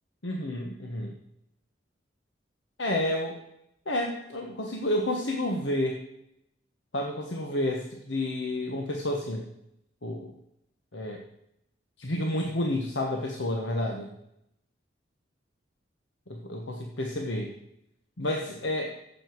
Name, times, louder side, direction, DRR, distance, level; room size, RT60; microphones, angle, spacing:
voice 1, 0.2-1.1 2.8-3.4 3.9-6.0 6.9-9.5 10.0-10.3 10.9-11.2 12.0-14.1 16.3-17.5 18.2-18.9, left 1 dB, 80° left, 1 dB, 1.2 m, -30 dB
14.5 x 7.7 x 4.7 m, 0.79 s
head